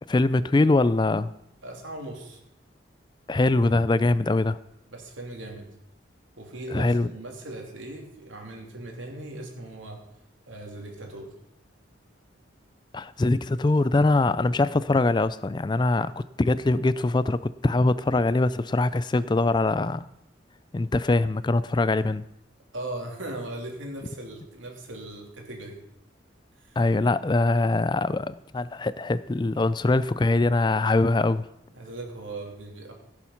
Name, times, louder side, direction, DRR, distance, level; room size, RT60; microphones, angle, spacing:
voice 1, 0.1-1.3 3.3-4.6 6.7-7.1 12.9-20.1 20.7-22.2 26.8-31.5, left 2 dB, 25° left, 16 dB, 0.4 m, -23 dB
voice 2, 1.6-2.4 4.9-5.7 6.4-10.0 10.4-11.3 22.7-25.8 26.6-26.8 31.7-32.9, right 1 dB, 85° right, 1 dB, 3.1 m, -38 dB
16.5 x 7.1 x 5.9 m, 0.80 s
head